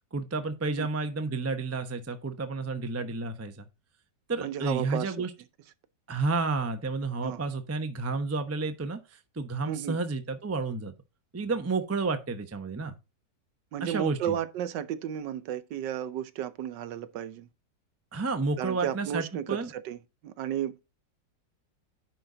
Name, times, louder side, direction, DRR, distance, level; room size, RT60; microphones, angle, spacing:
voice 1, 0.1-3.7 4.3-5.3 6.1-9.0 9.4-10.9 11.3-12.9 13.8-14.3 18.1-19.7, right 3 dB, 20° right, 0.4 m, -31 dB
voice 2, 4.4-5.3 7.2-7.4 9.7-10.0 13.7-17.5 18.6-20.0 20.2-20.8, right 10 dB, 75° right, 1.4 m, -33 dB
10.0 x 4.1 x 4.8 m
omnidirectional pair, 1.9 m